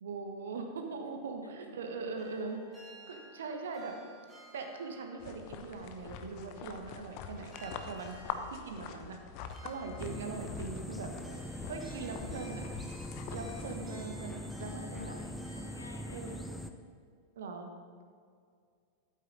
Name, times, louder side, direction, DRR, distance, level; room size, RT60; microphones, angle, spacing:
voice 1, 0.0-2.6 3.1-4.0 4.5-8.2 8.5-9.2 9.6-11.1 11.7-12.7 13.3-15.1 16.1-16.4 17.4-17.7, right 4 dB, 65° right, 4 dB, 1.4 m, -41 dB
sound 1, 2.2-7.2 7.5-16.7, right 1 dB, 15° right, 3.1 m, -57 dB
sound 2, 5.2-13.8, left 7 dB, 45° left, 0.8 m, -45 dB
voice 2, 8.8-9.2 11.3-11.7 14.8-16.5, left 1 dB, 80° left, 5 dB, 1.1 m, -53 dB
sound 3, 10.0-16.7, left 1 dB, 5° left, 0.7 m, -42 dB
12.5 x 8.3 x 4.1 m, 2.2 s
figure-of-eight pair, 90°, 0 cm